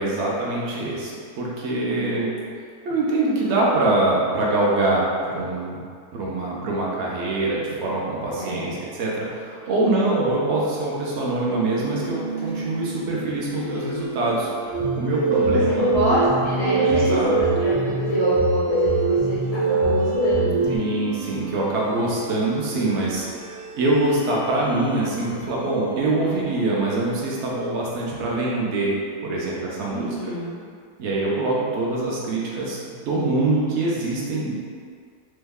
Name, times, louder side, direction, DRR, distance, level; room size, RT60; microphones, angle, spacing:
voice 1, 0.0-2.3 2.8-5.8 6.1-15.9 16.8-17.4 20.7-23.5 23.7-28.9 29.2-30.2 31.0-34.5, right 2 dB, 60° right, -4 dB, 0.7 m, -24 dB
voice 2, 1.7-2.2 8.3-8.7 9.7-9.9 15.4-15.6 15.9-20.7 29.9-30.6, left 1 dB, 60° left, -9 dB, 0.6 m, -28 dB
sound 1, 11.4-26.5, right 4 dB, 45° right, 1.4 m, -34 dB
sound 2, 14.7-20.8, right 2 dB, 15° right, 0.4 m, -22 dB
3.0 x 2.2 x 3.4 m, 2.1 s
omnidirectional pair, 1.7 m